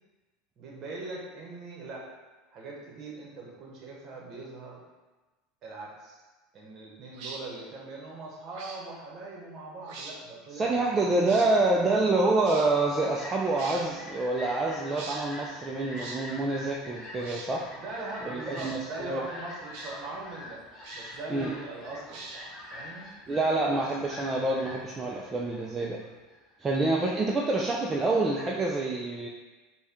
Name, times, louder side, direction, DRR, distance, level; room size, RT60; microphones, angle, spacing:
voice 1, 0.6-2.1 2.5-4.8 5.6-6.2 6.5-11.5 11.8-12.1 17.8-20.6 20.9-23.1 23.7-23.8, right 2 dB, 45° right, -2 dB, 1.0 m, -41 dB
sound 1, 7.1-7.4 8.5-8.8 9.8-10.2 11.3-11.5 12.4-12.7 13.5-13.9 14.9-15.2 16.0-16.2 17.2-17.5 18.5-18.8 19.7-19.9 20.8-21.2 22.1-22.6, right 3 dB, 65° right, 0.6 m, -43 dB
voice 2, 10.5-17.7 18.2-19.2 21.3-21.5 23.3-26.0 26.6-29.3, right 2 dB, 20° right, -2 dB, 0.4 m, -27 dB
Fowl, 12.7-26.5, left 1 dB, 25° left, 1.2 m, -45 dB
4.1 x 2.2 x 3.6 m, 1.2 s
supercardioid pair, 115°, 0 cm